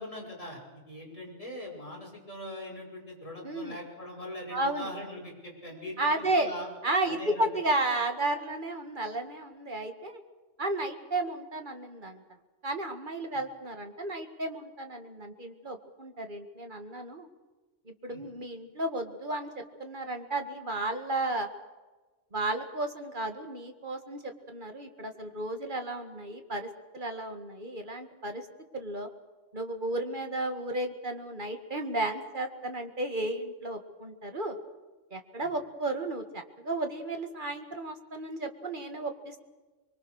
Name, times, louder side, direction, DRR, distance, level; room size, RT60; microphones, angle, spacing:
voice 1, 0.0-6.7 7.1-7.4 18.1-18.2, left 1 dB, 30° left, -2 dB, 6.4 m, -41 dB
voice 2, 3.4-3.8 4.5-4.9 6.0-6.5 6.8-10.2 10.6-12.2 12.6-17.3 17.9-21.5 22.3-26.7 26.9-28.5 28.7-29.1 29.5-34.6 35.1-39.5, right 2 dB, 40° right, 6 dB, 2.3 m, -33 dB
24.5 x 23.5 x 6.5 m, 1.2 s
omnidirectional pair, 1.2 m